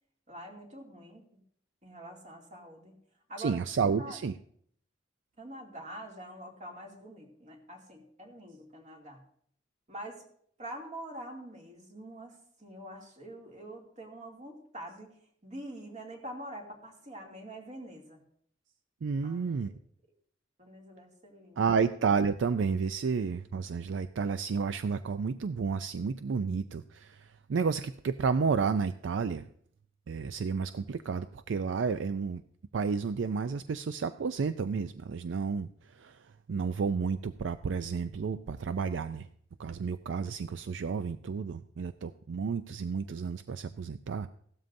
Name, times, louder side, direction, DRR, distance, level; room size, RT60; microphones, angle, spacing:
voice 1, 0.3-1.4 1.8-2.9 3.3-4.2 5.4-9.2 9.9-10.2 10.6-18.2 19.2-19.7 20.6-21.6, right 1 dB, 40° right, 0 dB, 2.5 m, -45 dB
voice 2, 3.4-4.3 19.0-19.7 21.6-29.4 30.1-32.4 32.7-36.2 36.5-39.3 39.6-44.3, right 5 dB, 70° right, 11 dB, 0.4 m, -31 dB
16.0 x 13.0 x 2.6 m, 0.64 s
head